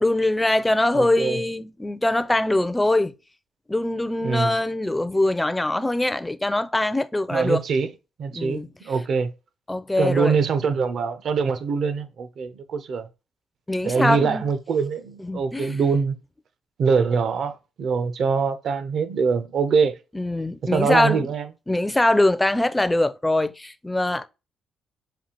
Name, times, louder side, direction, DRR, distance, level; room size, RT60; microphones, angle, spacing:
voice 1, 0.0-3.1 3.7-7.6 8.3-8.7 9.7-10.4 13.7-14.4 15.2-15.8 20.1-21.3 21.7-24.3, left 1 dB, 10° left, 0.4 m, -22 dB
voice 2, 0.9-1.4 4.2-4.6 7.3-7.9 8.2-9.3 10.0-13.1 13.8-16.2 16.8-20.0 20.7-21.5, right 5 dB, 60° right, 0.6 m, -23 dB
5.2 x 2.4 x 2.9 m
cardioid pair, 90°, 0 cm